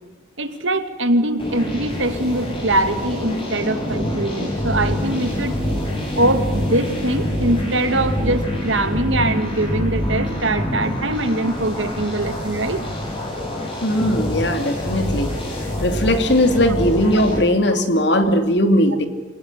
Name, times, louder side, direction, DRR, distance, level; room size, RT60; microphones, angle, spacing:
voice 1, 0.4-5.5 6.2-12.8, right 1 dB, 90° right, 9 dB, 2.5 m, -22 dB
sound 1, 1.4-17.4, left 1 dB, 25° left, 7.8 m, -25 dB
voice 2, 13.8-15.3 15.8-19.1, left 1 dB, 65° left, 7 dB, 2.9 m, -18 dB
27.5 x 18.5 x 9.8 m, 1.2 s
head